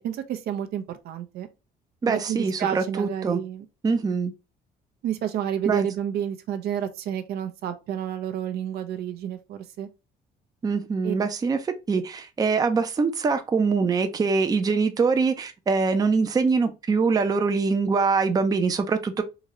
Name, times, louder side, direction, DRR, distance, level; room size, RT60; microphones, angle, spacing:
voice 1, 0.0-1.5 2.1-3.7 5.0-9.9 11.0-11.2, right 10 dB, 70° right, 0.6 m, -30 dB
voice 2, 2.0-3.4 3.8-4.3 5.7-5.9 10.6-11.6 11.9-19.2, right 4 dB, 20° right, 0.5 m, -23 dB
3.9 x 2.7 x 3.0 m
cardioid pair, 110°, 17 cm